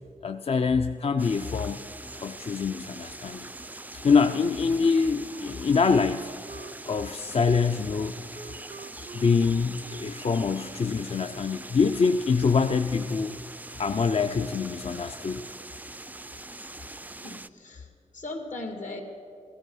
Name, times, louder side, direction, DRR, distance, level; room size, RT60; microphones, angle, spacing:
voice 1, 0.2-1.8 2.2-3.5 3.9-6.3 6.9-8.1 9.1-13.4 13.8-15.4, left 5 dB, 50° left, 8 dB, 0.4 m, -25 dB
sound 1, 1.2-17.5, right 2 dB, 10° right, 0.3 m, -43 dB
Wind instrument woodwind instrument, 4.9-10.8, right 5 dB, 85° right, 0.6 m, -47 dB
voice 2, 17.2-19.0, left 2 dB, 70° left, 3 dB, 2.2 m, -38 dB
16.0 x 13.5 x 5.5 m, 2.4 s
wide cardioid pair, 95°, 13 cm